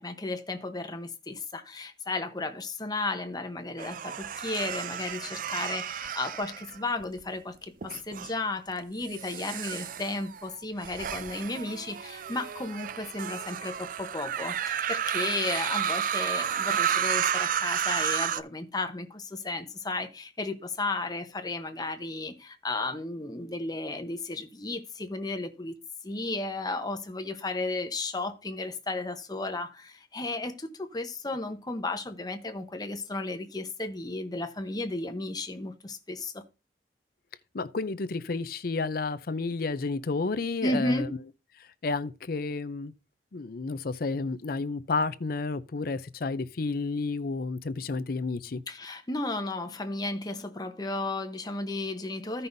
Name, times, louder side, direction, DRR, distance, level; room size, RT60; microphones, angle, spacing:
voice 1, 0.0-25.7 26.0-36.4 40.6-41.1 48.7-52.5, left 2 dB, 25° left, 0.9 m, -34 dB
sound 1, 3.8-7.2 7.8-8.3 9.0-18.4, right 8 dB, 50° right, 0.4 m, -32 dB
voice 2, 37.5-41.1 41.8-42.9 43.3-48.6, left 3 dB, 55° left, 0.5 m, -31 dB
15.0 x 5.5 x 2.6 m
head